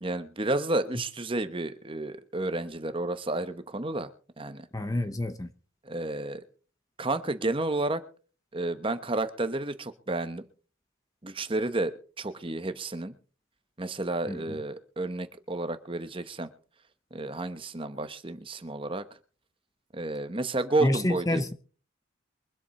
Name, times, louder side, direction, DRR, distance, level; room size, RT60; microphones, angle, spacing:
voice 1, 0.0-4.1 4.4-4.6 5.8-6.4 7.0-8.0 8.5-10.4 11.2-13.1 13.8-16.5 17.1-19.0 19.9-21.4, right 2 dB, 25° right, 1.0 m, -31 dB
voice 2, 4.7-5.5 14.3-14.6 20.8-21.5, left 1 dB, 15° left, 0.8 m, -28 dB
23.5 x 8.1 x 4.2 m
head